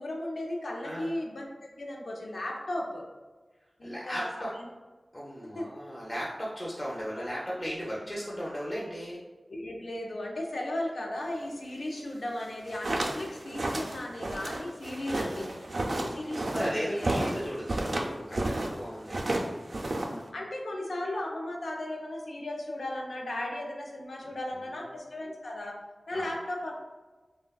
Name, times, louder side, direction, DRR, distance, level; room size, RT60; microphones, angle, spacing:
voice 1, 0.0-1.5 1.7-3.0 3.8-4.5 5.5-5.7 7.2-7.3 9.5-15.5 16.0-17.1 17.9-18.0 19.9-25.8 26.1-26.9, left 1 dB, 80° left, 0 dB, 0.5 m, -36 dB
voice 2, 0.8-1.1 3.8-4.5 5.1-9.2 15.0-15.5 16.2-19.7 24.5-24.9 26.1-26.3, equal, 25° left, -6 dB, 0.5 m, -37 dB
sound 1, 12.5-18.7 19.0-20.3, right 1 dB, 75° right, 0.3 m, -32 dB
3.3 x 2.1 x 2.2 m, 1.3 s
wide cardioid pair, 75°, 0 cm